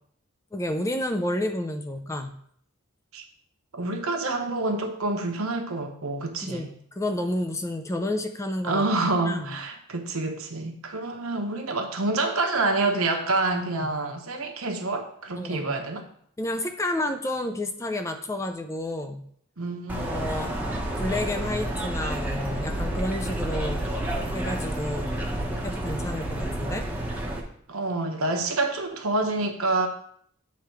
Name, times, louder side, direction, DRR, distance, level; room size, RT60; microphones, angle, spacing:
voice 1, 0.5-2.4 6.4-9.6 13.8-13.9 15.3-15.7 16.4-19.3 20.0-20.5 21.0-23.8 24.3-25.2 25.6-26.9, left 1 dB, 15° left, 6 dB, 0.4 m, -30 dB
voice 2, 3.7-6.7 8.6-16.0 19.6-20.1 27.7-29.9, right 2 dB, 80° right, 3 dB, 1.0 m, -27 dB
sound 1, 19.9-27.4, right 1 dB, 10° right, 0.8 m, -30 dB
8.3 x 3.4 x 4.6 m, 0.66 s
head